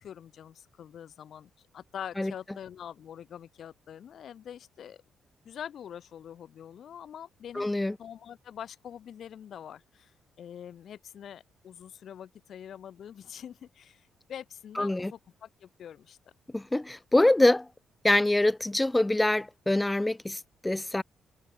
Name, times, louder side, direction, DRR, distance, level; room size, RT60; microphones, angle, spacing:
voice 1, 0.0-5.0 5.5-7.7 8.0-16.2, left 9 dB, 60° left, 5.2 m, -44 dB
voice 2, 7.6-8.0 14.8-15.1 16.5-17.7 18.0-21.0, left 1 dB, 10° left, 1.0 m, -25 dB
cardioid pair, 90°, 0 cm